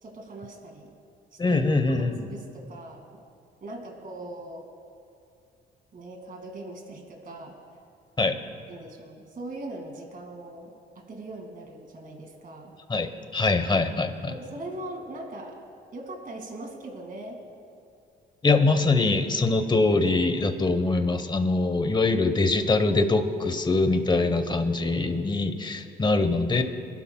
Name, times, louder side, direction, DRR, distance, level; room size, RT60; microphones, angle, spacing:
voice 1, 0.0-1.0 1.3-3.2 3.6-4.7 5.9-7.6 8.7-12.7 14.3-15.6 15.9-17.4 18.5-18.6, right 2 dB, 45° right, 1 dB, 2.3 m, -41 dB
voice 2, 1.4-2.1 8.2-8.4 12.9-14.1 18.4-26.6, left 3 dB, 20° left, 8 dB, 1.1 m, -23 dB
27.5 x 12.0 x 2.3 m, 2.4 s
cardioid pair, 90°, 20 cm